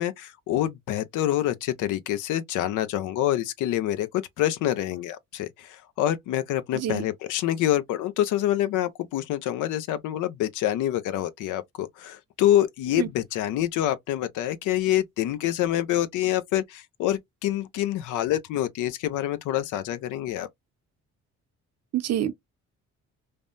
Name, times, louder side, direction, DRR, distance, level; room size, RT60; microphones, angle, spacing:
voice 1, 0.0-20.5, left 12 dB, 85° left, 0.6 m, -26 dB
voice 2, 6.7-7.0 13.0-13.1 21.9-22.3, right 11 dB, 55° right, 0.7 m, -26 dB
3.3 x 2.1 x 2.5 m
cardioid pair, 90°, 30 cm